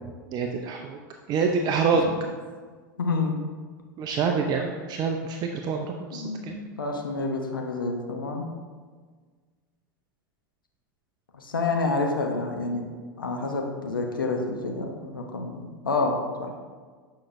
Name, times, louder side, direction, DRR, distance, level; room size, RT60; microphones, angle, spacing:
voice 1, 0.3-1.0 1.3-2.1 4.0-6.5, right 5 dB, 40° right, 3 dB, 0.6 m, -26 dB
voice 2, 3.0-3.4 6.1-8.5 11.4-12.8 13.2-16.6, left 3 dB, 90° left, 2 dB, 0.8 m, -28 dB
8.7 x 5.8 x 2.6 m, 1.5 s
hypercardioid pair, 95°, 11 cm